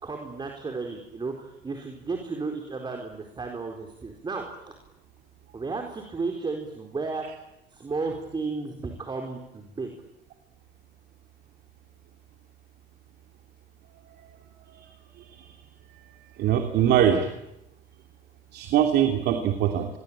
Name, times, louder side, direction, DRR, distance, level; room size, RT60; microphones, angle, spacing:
voice 1, 0.0-4.7 5.5-7.2 7.7-9.9, right 4 dB, 25° right, 3 dB, 4.4 m, -33 dB
voice 2, 16.4-17.3 18.5-19.9, right 9 dB, 75° right, 5 dB, 2.8 m, -22 dB
28.0 x 23.0 x 8.9 m, 0.87 s
cardioid pair, 110°, 17 cm